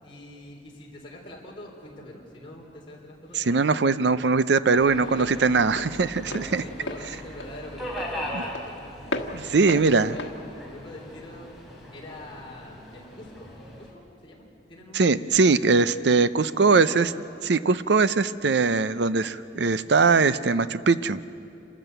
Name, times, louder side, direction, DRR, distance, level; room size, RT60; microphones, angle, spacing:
voice 1, 0.0-4.3 4.7-5.9 6.2-8.8 9.5-10.3 10.6-11.5 11.9-13.5 13.8-16.1 16.7-17.1, left 1 dB, 30° left, -3 dB, 3.8 m, -44 dB
Walk footsteps, 2.9-11.6, left 2 dB, 80° left, 1.4 m, -38 dB
voice 2, 3.4-6.6 8.3-8.4 9.3-10.1 14.9-17.1 17.5-21.2, right 4 dB, 70° right, 15 dB, 0.6 m, -21 dB
Subway metro underground, 4.7-13.9, equal, ahead, 3.3 m, -39 dB
27.5 x 13.5 x 8.1 m, 2.7 s
head